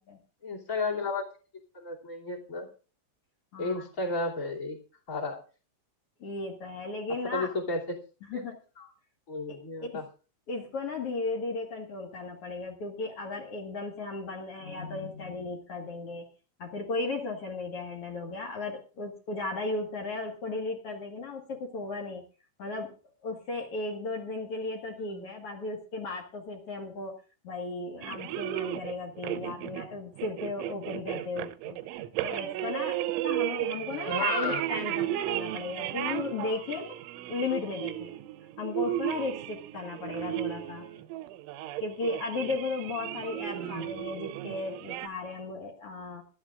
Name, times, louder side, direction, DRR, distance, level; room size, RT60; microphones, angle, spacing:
voice 1, 0.4-1.3 1.7-2.7 3.6-4.8 5.1-5.4 7.3-7.8 8.3-8.4 8.8-8.9 9.3-10.0 25.1-25.3 34.1-34.6 43.5-43.9, left 3 dB, 20° left, -2 dB, 2.2 m, -32 dB
voice 2, 3.5-3.8 6.2-7.5 8.3-8.6 9.8-10.0 10.5-16.2 16.6-22.2 22.6-22.9 23.2-27.1 27.4-31.8 32.2-37.0 37.3-38.1 38.6-40.8 41.8-46.2, left 3 dB, 75° left, 1 dB, 1.3 m, -35 dB
sound 1, 28.0-45.1, right 14 dB, 85° right, 3.2 m, -34 dB
24.5 x 12.0 x 2.5 m, 0.34 s
omnidirectional pair, 5.5 m